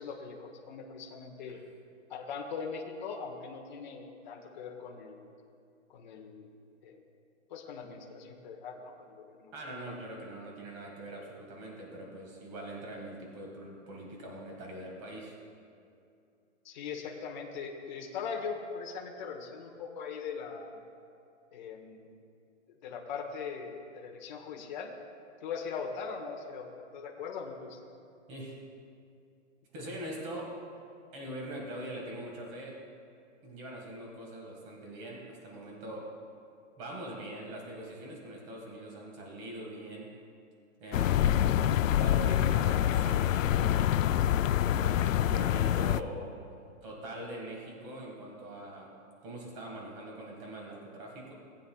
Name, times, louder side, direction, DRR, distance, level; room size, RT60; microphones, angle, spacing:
voice 1, 0.0-1.6 2.1-5.3 5.9-6.5 6.8-7.0 7.5-9.5 9.9-10.0 16.6-20.8 21.5-22.1 22.8-24.9 25.4-27.8, left 5 dB, 35° left, 0 dB, 1.2 m, -40 dB
voice 2, 9.5-15.4 28.3-28.6 29.7-30.5 31.1-32.8 33.4-36.1 36.8-40.1 40.8-44.3 44.8-46.4 46.8-48.9 49.2-51.3, right 1 dB, 25° right, -1 dB, 1.8 m, -42 dB
sound 1, 40.9-46.0, left 11 dB, 80° left, 0.5 m, -26 dB
18.5 x 8.5 x 2.4 m, 2.5 s
hypercardioid pair, 170°, 39 cm